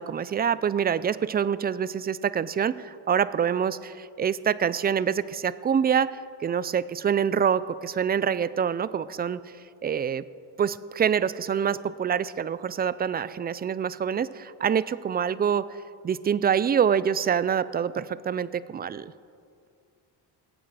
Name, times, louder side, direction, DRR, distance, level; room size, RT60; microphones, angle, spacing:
voice 1, 0.0-6.1 6.4-9.4 9.8-10.2 10.6-15.6 16.0-19.1, right 7 dB, 25° right, 17 dB, 0.3 m, -26 dB
21.0 x 8.8 x 4.8 m, 2.3 s
cardioid pair, 95°, 44 cm